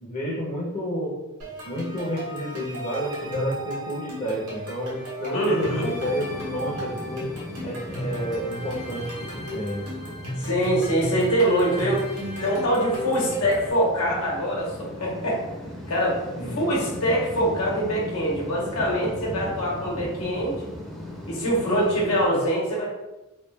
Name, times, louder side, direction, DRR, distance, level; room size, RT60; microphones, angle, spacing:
voice 1, 0.0-1.1 1.6-7.3 7.6-9.9 16.3-16.6, equal, 35° left, -5 dB, 0.8 m, -30 dB
sound 1, 1.4-13.7, equal, 80° right, 1.4 m, -35 dB
voice 2, 5.3-6.0 10.4-12.0 12.4-15.4 15.9-16.2 16.5-20.6 21.3-22.9, equal, 80° left, -4 dB, 1.1 m, -24 dB
sound 2, 5.6-22.3, left 1 dB, ahead, 0.7 m, -38 dB
3.2 x 2.4 x 3.2 m, 1.0 s
head